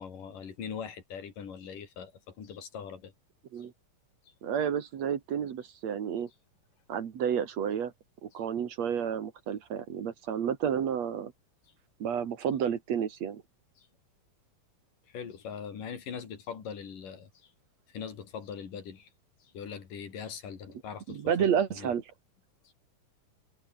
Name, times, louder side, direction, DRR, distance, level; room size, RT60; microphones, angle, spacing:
voice 1, 0.0-3.1 13.8-13.9 15.1-17.5 17.9-19.1 19.4-21.2 21.8-21.9 22.6-22.7, left 7 dB, 80° left, 4.8 m, -41 dB
voice 2, 4.4-6.3 6.9-7.9 8.2-11.3 12.0-13.4 21.1-22.0, right 8 dB, 60° right, 2.8 m, -30 dB
omnidirectional pair, 3.7 m